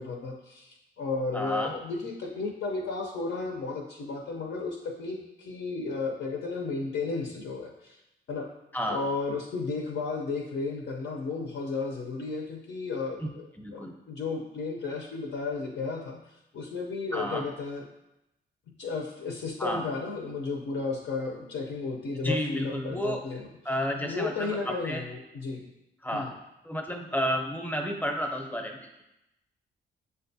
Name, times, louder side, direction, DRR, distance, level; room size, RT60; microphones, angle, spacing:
voice 1, 0.0-8.0 8.3-8.5 8.8-13.5 13.7-17.8 18.8-23.5 24.0-25.7 26.1-26.3, left 4 dB, 70° left, 0 dB, 0.6 m, -33 dB
voice 2, 1.3-1.7 8.7-9.0 13.6-13.9 17.1-17.4 19.6-19.8 22.2-23.2 23.6-25.1 26.0-26.3 26.6-29.0, equal, 10° left, 2 dB, 0.7 m, -31 dB
6.3 x 2.2 x 2.6 m, 0.89 s
cardioid pair, 65°, 21 cm